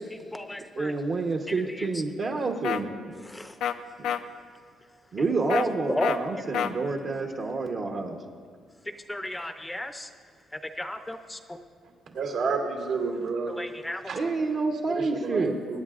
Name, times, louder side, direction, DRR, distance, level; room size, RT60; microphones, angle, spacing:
voice 1, 0.8-2.9 4.0-4.1 5.1-8.2 14.1-15.6, right 3 dB, 50° right, 1 dB, 1.0 m, -28 dB
sound 1, 2.6-2.8 3.6-3.7 4.0-4.2 5.5-5.7 6.0-6.2 6.5-6.7, left 9 dB, 85° left, 0.5 m, -27 dB
voice 2, 9.1-9.9 10.8-11.2 13.6-14.0, left 1 dB, 10° left, 7 dB, 0.6 m, -32 dB
voice 3, 12.1-13.5 14.0-14.2 14.9-15.8, right 4 dB, 80° right, 1 dB, 2.4 m, -30 dB
23.0 x 9.9 x 2.5 m, 2.1 s
cardioid pair, 90°, 0 cm